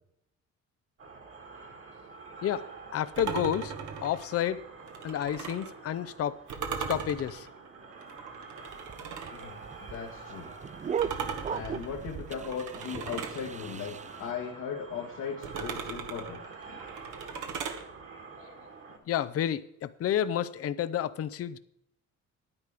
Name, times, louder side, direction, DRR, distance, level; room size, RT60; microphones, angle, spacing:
sound 1, 1.0-19.0, right 4 dB, 45° right, 2.1 m, -48 dB
voice 1, 2.9-3.7 4.0-4.6 5.0-6.4 6.9-7.5 19.1-21.6, left 10 dB, 50° left, 0.6 m, -30 dB
sound 2, 3.1-5.7 6.5-9.5 11.0-13.4 15.4-17.8, right 6 dB, 75° right, 1.5 m, -38 dB
sound 3, 8.7-14.3, right 8 dB, 25° right, 0.3 m, -37 dB
voice 2, 9.3-10.5 11.5-16.8, left 6 dB, 85° left, 1.7 m, -38 dB
9.8 x 9.5 x 5.0 m
cardioid pair, 90°, 30 cm